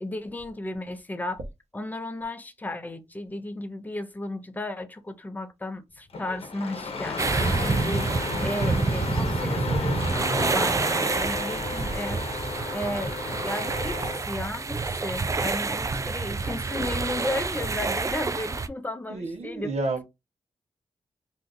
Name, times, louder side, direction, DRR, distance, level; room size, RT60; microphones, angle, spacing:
voice 1, 0.0-1.4 1.7-12.4 12.7-14.0 14.2-19.7, left 1 dB, 15° left, 0.6 m, -34 dB
Engine starting, 6.1-14.2, left 3 dB, 55° left, 0.8 m, -33 dB
sound 1, 7.2-18.7, right 3 dB, 25° right, 0.3 m, -28 dB
voice 2, 19.1-20.0, right 3 dB, 65° right, 1.0 m, -30 dB
2.7 x 2.4 x 3.7 m
cardioid pair, 85°, 12 cm